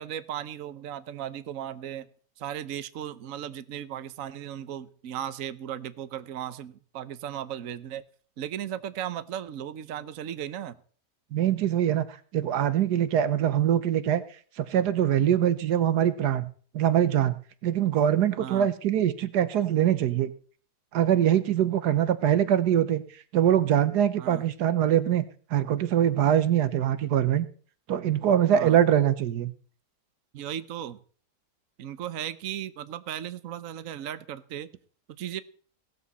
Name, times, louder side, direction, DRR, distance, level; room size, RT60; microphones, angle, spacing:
voice 1, 0.0-2.1 2.4-8.0 8.4-10.8 18.4-18.7 24.2-24.4 28.5-28.8 30.3-31.0 31.8-34.7 35.1-35.4, right 10 dB, 60° right, 12 dB, 1.2 m, -36 dB
voice 2, 11.3-12.0 12.3-14.2 14.6-20.3 20.9-23.0 23.3-25.2 25.5-27.5 27.9-29.5, right 10 dB, 80° right, 13 dB, 1.5 m, -23 dB
18.0 x 13.5 x 4.1 m, 0.43 s
omnidirectional pair, 1.7 m